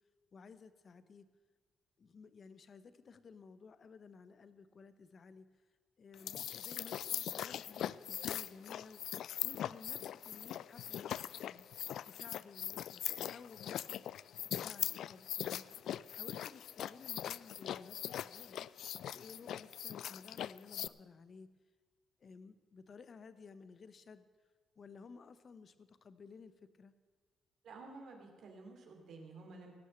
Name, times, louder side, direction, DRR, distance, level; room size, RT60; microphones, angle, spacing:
voice 1, 0.3-1.3 2.0-5.5 6.0-9.0 9.4-11.2 11.5-11.7 12.1-14.0 14.5-15.7 16.1-18.7 19.1-21.5 22.2-24.3 24.8-26.5 26.8-26.9, left 5 dB, 45° left, 13 dB, 0.8 m, -55 dB
sound 1, 6.1-20.9, left 11 dB, 75° left, 0.3 m, -41 dB
voice 2, 27.6-29.7, right 3 dB, 65° right, 2 dB, 2.7 m, -52 dB
17.0 x 6.4 x 7.8 m, 1.5 s
cardioid pair, 90°, 0 cm